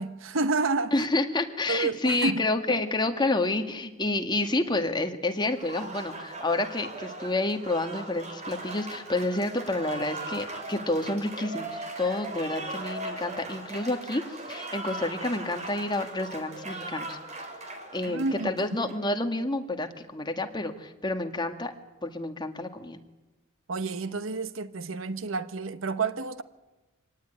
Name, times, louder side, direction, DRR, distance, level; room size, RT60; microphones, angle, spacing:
voice 1, 0.0-1.1 1.7-2.8 18.1-18.6 18.8-18.9 23.7-26.4, right 3 dB, 70° right, 1.0 m, -30 dB
voice 2, 0.9-17.2 17.9-21.7 22.0-23.0, left 2 dB, 20° left, 1.9 m, -29 dB
Applause, 5.4-19.1, right 2 dB, 35° right, 3.6 m, -39 dB
25.0 x 18.5 x 10.0 m
head